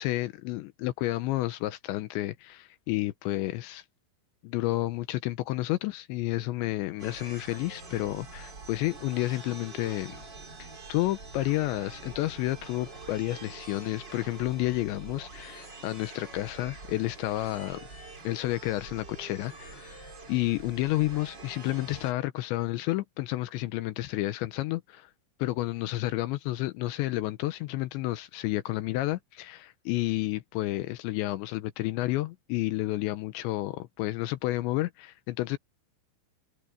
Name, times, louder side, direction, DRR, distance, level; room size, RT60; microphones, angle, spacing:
voice 1, 0.0-3.8 4.4-10.2 10.6-17.9 18.2-25.1 25.4-35.6, left 17 dB, 80° left, 2.7 m, -31 dB
sound 1, 7.0-22.1, right 3 dB, 25° right, 3.0 m, -45 dB
omnidirectional pair, 5.9 m